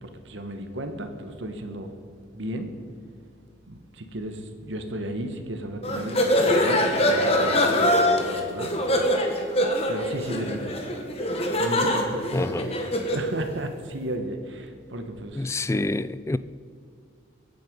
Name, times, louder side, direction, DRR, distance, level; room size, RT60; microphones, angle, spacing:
voice 1, 0.0-1.9 2.3-2.8 3.7-8.8 9.9-10.8 11.6-12.9 13.1-15.5, right 1 dB, 70° right, 1.5 m, -34 dB
sound 1, 5.8-13.3, left 1 dB, 30° left, 1.5 m, -23 dB
voice 2, 12.3-12.7 15.4-16.4, left 2 dB, 15° left, 0.3 m, -27 dB
22.5 x 9.4 x 5.3 m
head